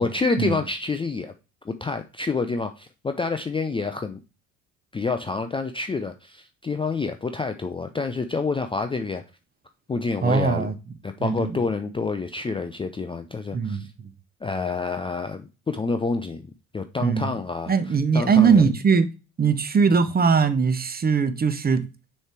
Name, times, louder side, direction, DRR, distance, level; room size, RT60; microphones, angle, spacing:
voice 1, 0.0-1.3 1.7-4.2 4.9-9.2 9.9-10.7 11.0-13.9 14.4-16.4 16.7-17.7 18.1-18.6, left 4 dB, 15° left, 0.4 m, -28 dB
voice 2, 10.2-10.8 11.2-11.6 13.5-13.9 17.0-17.4 17.7-19.1 19.4-21.8, right 5 dB, 20° right, 0.7 m, -20 dB
6.4 x 3.3 x 4.4 m
hypercardioid pair, 60°, 43 cm